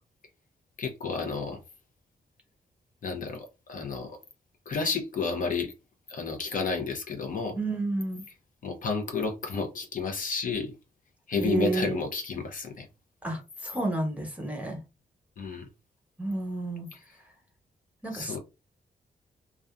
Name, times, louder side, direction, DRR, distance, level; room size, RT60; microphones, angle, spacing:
voice 1, 0.8-1.6 3.0-4.2 4.7-5.7 6.1-7.6 8.6-10.7 11.3-12.9 15.4-15.7 18.1-18.4, left 4 dB, 60° left, 0.7 m, -31 dB
voice 2, 7.6-8.2 11.4-12.0 13.2-14.8 16.2-16.9 18.0-18.4, right 2 dB, 10° right, 1.0 m, -31 dB
2.5 x 2.3 x 2.3 m
cardioid pair, 75°, 16 cm